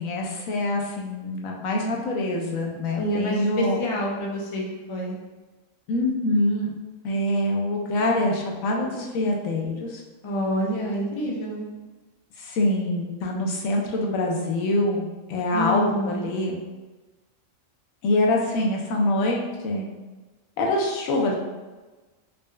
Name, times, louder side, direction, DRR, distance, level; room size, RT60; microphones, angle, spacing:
voice 1, 0.0-3.8 5.9-6.7 7.0-10.0 12.4-16.6 18.0-19.9 20.6-21.4, left 1 dB, 80° left, 0 dB, 1.0 m, -25 dB
voice 2, 3.0-5.2 10.2-11.7 15.5-16.3, equal, 40° left, -2 dB, 0.4 m, -27 dB
4.0 x 2.2 x 3.1 m, 1.2 s
omnidirectional pair, 1.4 m